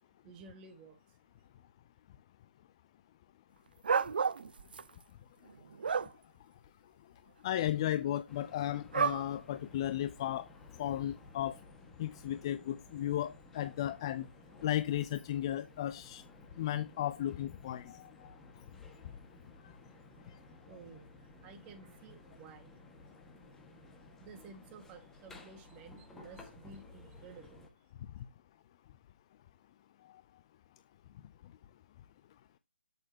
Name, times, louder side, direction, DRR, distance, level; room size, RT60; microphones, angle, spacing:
voice 1, 0.2-1.2 20.1-20.2 20.7-22.8 24.2-27.9, right 5 dB, 20° right, 1.8 m, -54 dB
sound 1, 3.8-4.8 5.5-6.1 8.9-9.2 10.1-10.2, right 6 dB, 55° right, 0.6 m, -30 dB
voice 2, 7.4-10.5 10.8-11.6 12.0-14.3 14.6-16.2 16.6-18.3, left 12 dB, 25° left, 0.5 m, -35 dB
sound 2, 8.3-27.7, left 2 dB, 5° left, 1.7 m, -56 dB
20.0 x 6.8 x 2.9 m
figure-of-eight pair, 150°, 6 cm